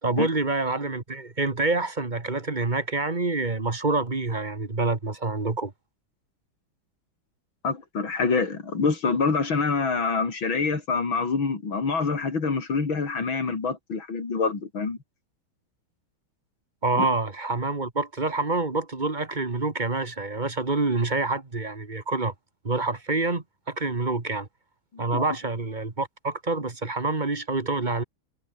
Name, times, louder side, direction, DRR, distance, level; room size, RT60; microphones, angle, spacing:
voice 1, 0.0-5.7 16.8-22.3 22.6-24.5 25.0-28.0, right 3 dB, 25° right, 1.8 m, -27 dB
voice 2, 7.6-15.0 17.0-17.1 24.9-25.2, left 4 dB, 70° left, 4.4 m, -26 dB
omnidirectional pair, 2.3 m